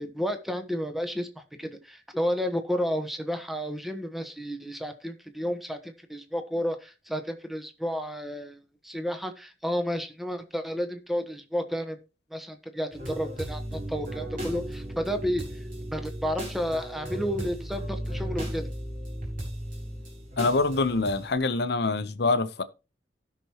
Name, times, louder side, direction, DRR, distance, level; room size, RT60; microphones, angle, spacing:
voice 1, 0.0-8.6 8.8-12.0 12.3-15.4 15.9-18.7, equal, ahead, 1.2 m, -31 dB
sound 1, 12.9-21.4, equal, 50° right, 5.0 m, -36 dB
voice 2, 20.4-22.6, left 3 dB, 65° left, 0.8 m, -25 dB
16.5 x 6.1 x 3.0 m
head